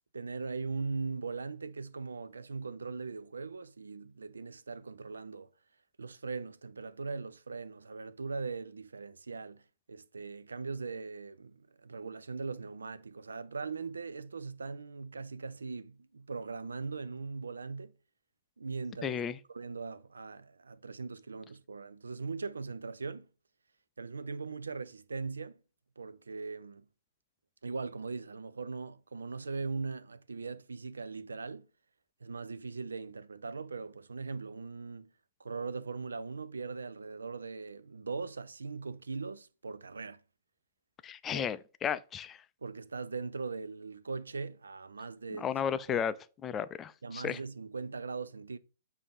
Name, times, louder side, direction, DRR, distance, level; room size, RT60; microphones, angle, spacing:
voice 1, 0.1-5.5 6.0-17.9 18.6-19.2 19.5-23.3 24.0-25.6 26.0-26.9 27.6-31.7 32.2-35.1 35.4-40.2 41.3-41.5 42.6-45.5 45.9-46.0 47.0-48.6, right 4 dB, 80° right, 0.4 m, -40 dB
voice 2, 19.0-19.4 41.0-42.4 45.4-46.1 46.4-47.4, left 8 dB, 20° left, 0.4 m, -33 dB
6.8 x 2.7 x 5.1 m
figure-of-eight pair, 115°, 0 cm